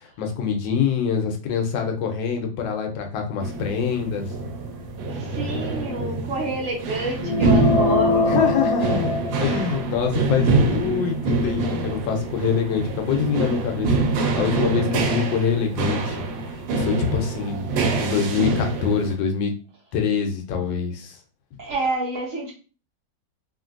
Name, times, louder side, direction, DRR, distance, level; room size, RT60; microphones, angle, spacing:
voice 1, 0.0-4.3 8.3-9.1 9.4-14.1 14.4-16.2 16.7-17.7 18.0-19.5 19.9-21.2, left 6 dB, 85° left, 3 dB, 1.4 m, -25 dB
sound 1, 3.4-19.1, right 3 dB, 80° right, 1.3 m, -25 dB
voice 2, 5.1-8.4 21.6-22.5, right 3 dB, 55° right, -3 dB, 1.0 m, -28 dB
sound 2, 7.2-9.8, left 3 dB, 65° left, 1.3 m, -22 dB
3.1 x 2.5 x 2.5 m, 0.36 s
omnidirectional pair, 2.0 m